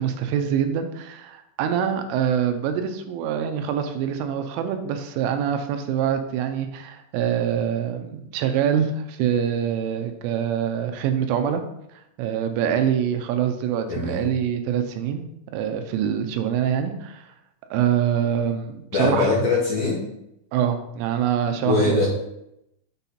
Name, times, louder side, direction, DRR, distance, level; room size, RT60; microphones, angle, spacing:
voice 1, 0.0-11.6 12.2-15.2 15.5-17.3 17.7-19.3 20.5-22.0, right 9 dB, 85° right, 7 dB, 3.2 m, -25 dB
voice 2, 13.9-14.2 18.9-20.1 21.6-22.1, left 3 dB, 65° left, -6 dB, 2.5 m, -22 dB
8.1 x 4.0 x 4.2 m, 0.81 s
omnidirectional pair, 5.7 m